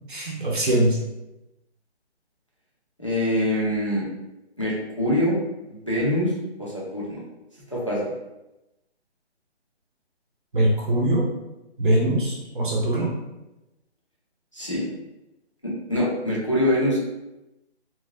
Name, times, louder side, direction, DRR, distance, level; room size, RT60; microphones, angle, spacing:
voice 1, 0.1-1.0 10.5-11.3 11.8-13.1, right 1 dB, 45° right, -4 dB, 0.6 m, -22 dB
voice 2, 3.0-4.1 4.6-5.4 5.7-6.3 6.6-7.2 7.7-8.1 14.5-14.9 15.6-17.0, left 1 dB, 30° left, -6 dB, 0.5 m, -24 dB
2.9 x 2.2 x 2.6 m, 0.97 s
hypercardioid pair, 175°, 34 cm